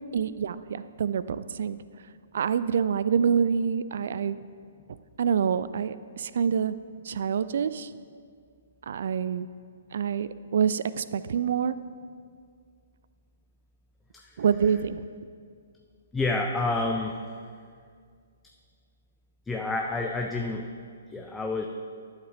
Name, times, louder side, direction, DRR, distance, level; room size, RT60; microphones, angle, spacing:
voice 1, 0.1-1.8 2.3-4.4 5.2-6.8 7.0-7.9 8.8-9.5 9.9-11.8 14.4-15.0, right 7 dB, 55° right, 14 dB, 0.3 m, -26 dB
voice 2, 14.1-14.4 16.1-17.2 19.5-20.7 21.1-21.7, left 2 dB, 10° left, 1 dB, 0.5 m, -29 dB
12.0 x 7.3 x 3.9 m, 2.1 s
figure-of-eight pair, 125°, 0 cm